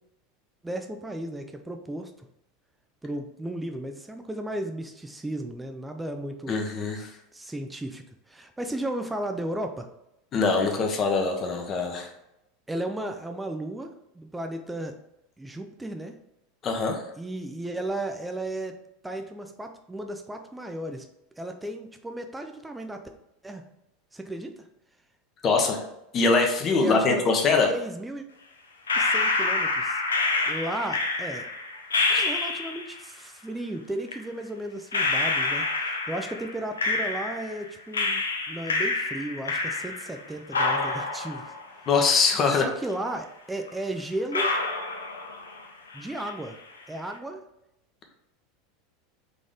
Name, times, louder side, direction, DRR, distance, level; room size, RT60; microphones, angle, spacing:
voice 1, 0.6-2.1 3.0-6.6 7.3-9.9 10.6-10.7 12.7-14.9 15.4-16.1 17.2-18.8 19.0-21.1 21.4-23.0 23.4-23.6 24.1-24.7 26.8-27.4 27.7-28.2 28.9-30.0 30.5-31.5 32.2-41.5 42.5-44.5 45.9-46.6 46.9-47.4, right 1 dB, 10° right, 5 dB, 0.4 m, -34 dB
voice 2, 6.5-7.1 10.3-12.1 16.6-17.0 25.4-25.8 26.1-27.7 32.1-32.3 41.9-42.6, left 4 dB, 35° left, 3 dB, 0.9 m, -23 dB
sound 1, 28.9-33.0 34.1-34.2 34.9-37.6 37.9-40.2 40.5-42.6 42.9-43.0 43.7-43.8 44.3-45.6 45.9-46.5, left 3 dB, 80° left, 0.6 m, -27 dB
3.9 x 3.7 x 3.5 m, 0.86 s
figure-of-eight pair, 80°, 0 cm